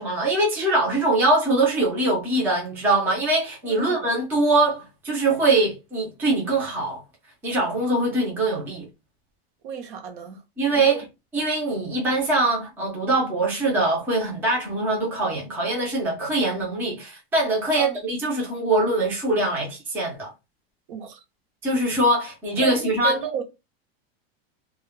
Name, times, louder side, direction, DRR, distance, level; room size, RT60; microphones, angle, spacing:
voice 1, 0.0-7.0 7.4-8.9 10.6-11.0 11.3-20.3 21.6-23.2, right 2 dB, 5° right, 0.5 m, -23 dB
voice 2, 3.6-4.0 9.6-10.4 10.7-11.0 17.8-18.0 20.9-21.2 22.6-23.4, right 7 dB, 55° right, 0.7 m, -32 dB
2.1 x 2.0 x 3.5 m
supercardioid pair, 170°, 31 cm